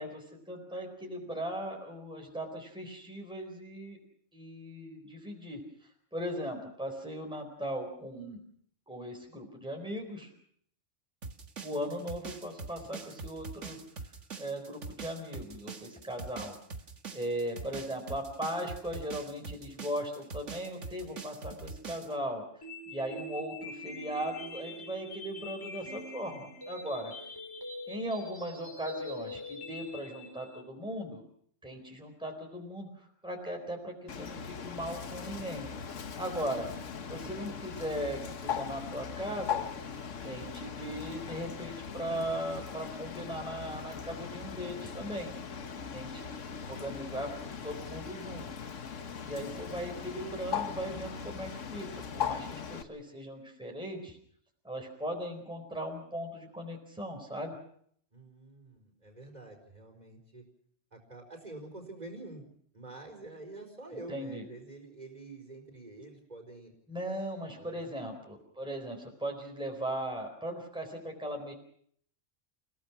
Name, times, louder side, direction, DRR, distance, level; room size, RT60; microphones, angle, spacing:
voice 1, 0.0-4.0 4.3-5.6 6.1-8.4 8.9-10.3 11.6-13.8 14.0-16.6 17.1-22.4 22.9-27.1 27.9-31.2 31.6-35.7 36.2-36.7 37.0-39.7 40.2-45.3 45.9-46.3 46.6-48.5 49.2-54.2 54.6-57.6 63.9-64.4 66.9-71.5, equal, 5° right, 1 dB, 4.2 m, -38 dB
sound 1, 11.2-22.1, right 4 dB, 75° right, 2.0 m, -43 dB
sound 2, 22.6-30.6, left 1 dB, 15° left, 5.2 m, -43 dB
Bird, 34.1-52.8, left 7 dB, 80° left, 1.5 m, -39 dB
voice 2, 58.1-60.4 60.9-62.4 62.7-66.7 67.6-67.8, right 2 dB, 35° right, 3 dB, 4.9 m, -47 dB
30.0 x 17.0 x 6.0 m, 0.64 s
omnidirectional pair, 1.3 m